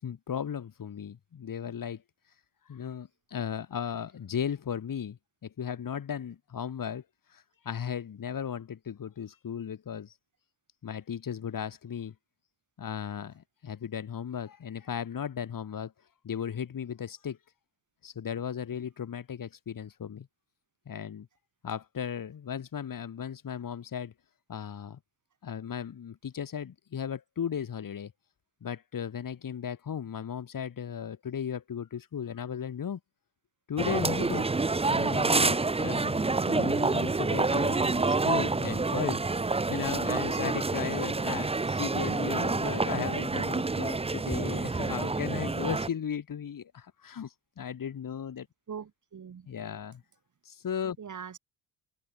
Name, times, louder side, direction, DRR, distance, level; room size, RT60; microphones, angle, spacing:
voice 1, 0.0-2.0 2.7-7.0 7.3-10.1 10.8-12.1 12.8-15.9 16.2-17.4 18.0-20.3 20.9-21.3 21.6-24.1 24.5-25.0 25.4-28.1 28.6-33.0 33.7-34.5 34.9-39.2 39.7-48.5 49.5-50.0 50.4-51.0, left 8 dB, 50° left, 6.4 m, -36 dB
sound 1, 33.8-45.9, right 3 dB, 15° right, 1.0 m, -28 dB
voice 2, 48.7-49.5 51.0-51.4, right 7 dB, 45° right, 5.2 m, -42 dB
supercardioid pair, 75°, 41 cm